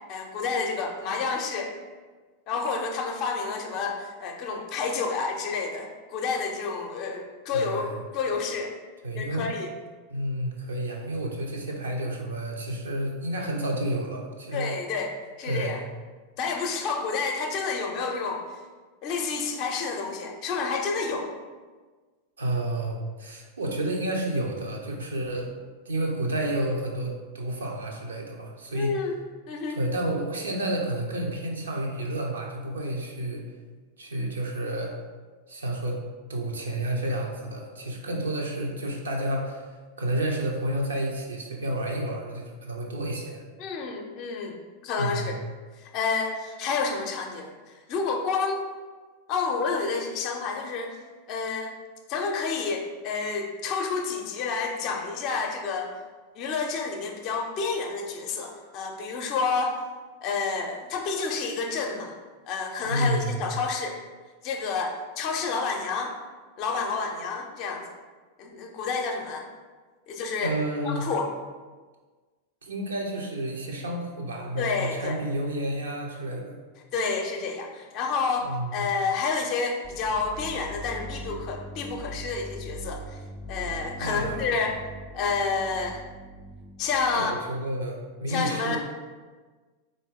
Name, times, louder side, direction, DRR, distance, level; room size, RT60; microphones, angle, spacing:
voice 1, 0.1-1.7 2.5-8.7 9.1-9.7 14.5-15.8 16.4-18.6 19.0-21.3 28.7-29.2 29.5-29.8 43.6-44.6 44.8-45.4 45.8-48.6 49.3-51.0 51.3-51.7 52.1-55.9 56.3-59.8 60.2-62.1 62.5-64.0 64.4-66.2 66.6-67.9 68.4-69.5 70.1-70.5 70.8-71.3 74.6-75.2 76.9-83.2 83.5-84.8 85.1-86.0 86.8-87.3 88.3-88.8, left 4 dB, 40° left, 3 dB, 0.5 m, -29 dB
voice 2, 7.5-8.0 9.0-9.5 10.1-14.7 15.4-15.8 22.4-25.5 25.9-28.9 29.7-33.4 34.0-34.9 35.5-36.0 36.3-39.7 40.0-43.4 45.0-45.4 62.9-63.4 70.4-71.1 72.6-76.6 78.5-78.9 84.0-84.6 87.1-88.8, right 1 dB, 70° right, 0 dB, 0.6 m, -30 dB
sound 1, 79.8-87.6, right 1 dB, 15° right, 0.4 m, -41 dB
3.9 x 2.6 x 3.7 m, 1.4 s
figure-of-eight pair, 90°, 0 cm